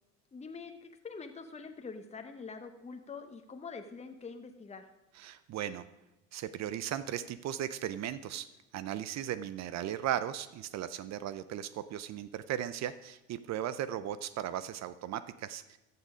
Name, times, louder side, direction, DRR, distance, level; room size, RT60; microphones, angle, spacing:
voice 1, 0.3-4.9, left 4 dB, 20° left, 6 dB, 1.0 m, -45 dB
voice 2, 5.2-5.8 6.3-8.5 8.7-15.6, right 11 dB, 50° right, 14 dB, 0.6 m, -37 dB
14.0 x 6.7 x 5.0 m, 0.98 s
supercardioid pair, 85°, 35 cm